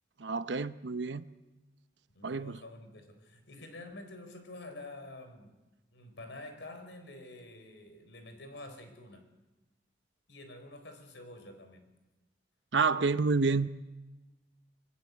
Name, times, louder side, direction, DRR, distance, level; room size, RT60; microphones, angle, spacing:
voice 1, 0.2-1.2 2.2-2.6 12.7-13.7, right 4 dB, 85° right, 0.8 m, -29 dB
voice 2, 2.1-5.6 5.9-9.3 10.3-11.8, left 2 dB, 85° left, 4.1 m, -48 dB
26.5 x 20.0 x 8.1 m
head